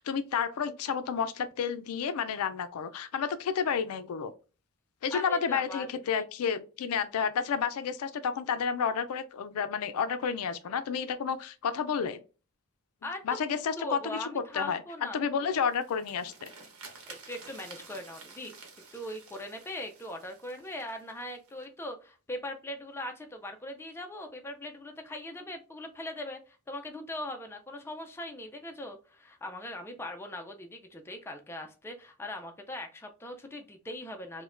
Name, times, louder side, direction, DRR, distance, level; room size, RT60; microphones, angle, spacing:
voice 1, 0.0-4.3 5.0-12.2 13.2-14.8 15.1-16.5, left 6 dB, 85° left, 0.4 m, -31 dB
voice 2, 5.1-6.2 13.0-13.2 13.8-15.6 17.1-34.4, left 1 dB, 10° left, 0.4 m, -40 dB
sound 1, 15.5-21.6, right 4 dB, 80° right, 0.9 m, -51 dB
4.9 x 2.1 x 2.4 m
head